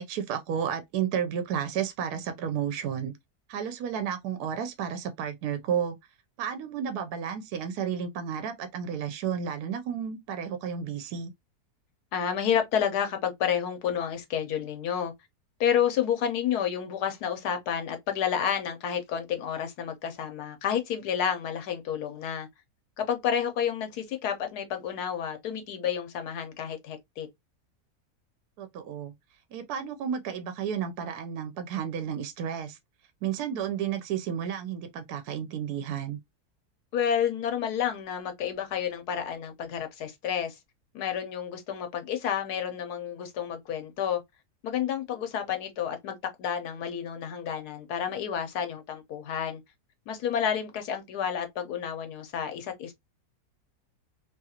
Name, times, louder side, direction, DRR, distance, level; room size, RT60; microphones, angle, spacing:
voice 1, 0.0-3.1 3.5-6.0 6.4-11.3 28.6-29.1 29.5-32.8 33.2-36.2, right 8 dB, 80° right, 1.1 m, -32 dB
voice 2, 12.1-15.1 15.6-22.5 23.0-27.3 36.9-40.6 40.9-44.2 44.6-49.6 50.1-52.9, left 8 dB, 80° left, 1.3 m, -30 dB
2.9 x 2.4 x 2.7 m
omnidirectional pair, 1.7 m